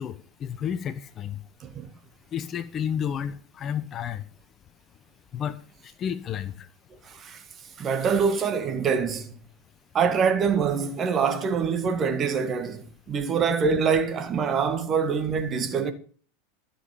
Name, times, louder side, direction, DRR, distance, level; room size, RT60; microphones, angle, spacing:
voice 1, 0.0-1.4 2.3-4.2 5.3-5.6 6.0-6.5, left 8 dB, 30° left, 1.0 m, -31 dB
voice 2, 7.0-7.4 7.8-9.3 9.9-15.9, right 6 dB, 30° right, 1.9 m, -25 dB
13.5 x 7.2 x 7.3 m
figure-of-eight pair, 80°, 0 cm